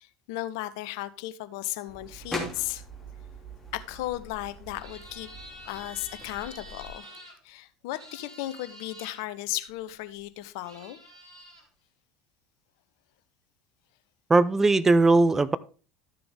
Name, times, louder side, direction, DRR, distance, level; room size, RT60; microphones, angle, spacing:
voice 1, 0.0-2.8 3.7-5.3 5.6-11.0, left 16 dB, 60° left, 0.7 m, -35 dB
sound 1, 1.9-6.9, left 1 dB, 10° left, 3.0 m, -41 dB
sound 2, 4.8-7.3 7.9-9.2 10.2-10.3 10.6-11.6, equal, 90° right, 2.8 m, -48 dB
voice 2, 14.3-15.6, right 3 dB, 15° right, 0.5 m, -19 dB
12.5 x 6.9 x 3.4 m
figure-of-eight pair, 70°, 2 cm